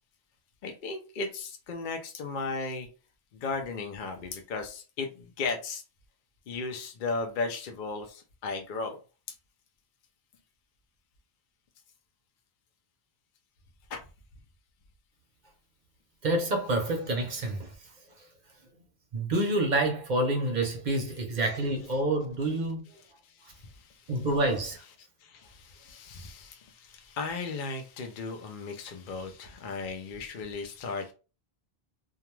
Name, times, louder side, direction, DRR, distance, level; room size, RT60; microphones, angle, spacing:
voice 1, 0.6-2.9 3.3-5.8 6.5-9.0 13.9-14.0 21.1-22.0 23.2-24.7 25.2-31.1, left 4 dB, 60° left, 0.6 m, -36 dB
voice 2, 16.2-17.7 19.1-22.8 24.1-24.8, right 2 dB, 50° right, 0.7 m, -28 dB
2.3 x 2.2 x 3.0 m
omnidirectional pair, 1.1 m